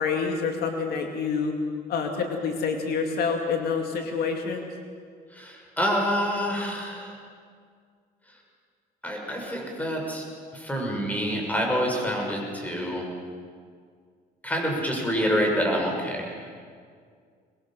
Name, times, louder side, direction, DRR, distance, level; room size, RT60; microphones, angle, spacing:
voice 1, 0.0-1.5 1.9-4.7, left 5 dB, 70° left, 4 dB, 2.4 m, -27 dB
voice 2, 5.3-7.2 9.0-10.3 10.5-13.1 14.4-16.5, equal, 10° left, 0 dB, 6.1 m, -27 dB
23.5 x 21.0 x 7.4 m, 2.1 s
cardioid pair, 110°, 17 cm